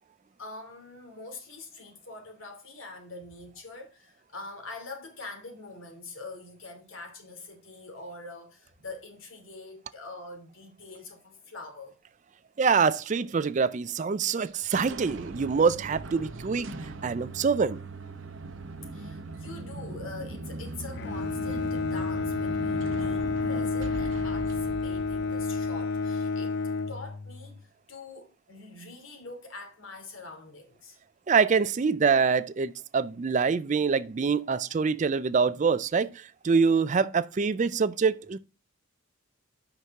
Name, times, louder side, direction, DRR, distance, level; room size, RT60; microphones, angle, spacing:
voice 1, 0.4-11.9 18.9-26.6 26.9-31.0 34.4-34.6, left 3 dB, 75° left, 2.8 m, -44 dB
voice 2, 12.6-16.7 17.0-17.8 31.3-38.4, right 5 dB, 35° right, 0.4 m, -25 dB
sound 1, 14.4-26.1, right 2 dB, 65° right, 0.8 m, -40 dB
Bowed string instrument, 20.9-27.6, left 4 dB, 55° left, 0.4 m, -30 dB
8.3 x 6.0 x 3.6 m
head